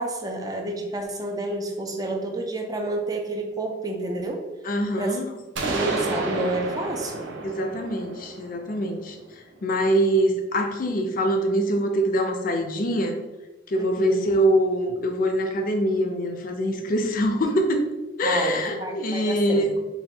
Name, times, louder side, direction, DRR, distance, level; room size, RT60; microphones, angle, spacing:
voice 1, 0.0-4.5 5.0-5.2 5.6-7.3 13.8-14.2 18.2-19.8, right 1 dB, 20° right, 3 dB, 0.5 m, -30 dB
voice 2, 4.6-5.3 7.4-9.2 9.6-13.2 13.7-17.9 18.2-19.7, equal, 45° left, 5 dB, 0.5 m, -24 dB
sound 1, 5.6-9.4, right 2 dB, 80° right, 0.6 m, -31 dB
3.4 x 2.2 x 4.2 m, 1.1 s
head